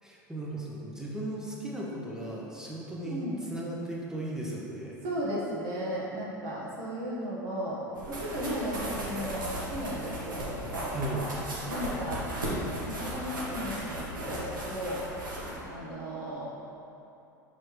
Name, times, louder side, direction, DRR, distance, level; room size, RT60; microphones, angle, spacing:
voice 1, 0.0-3.2 3.5-5.0 10.9-11.2, right 1 dB, 5° right, -4 dB, 1.1 m, -36 dB
voice 2, 3.0-3.4 5.0-11.0 11.7-15.1 15.6-16.5, equal, 50° right, -6 dB, 1.3 m, -35 dB
sound 1, 7.9-15.5, equal, 80° right, 1.3 m, -36 dB
6.2 x 5.2 x 3.1 m, 2.8 s
figure-of-eight pair, 75°, 11 cm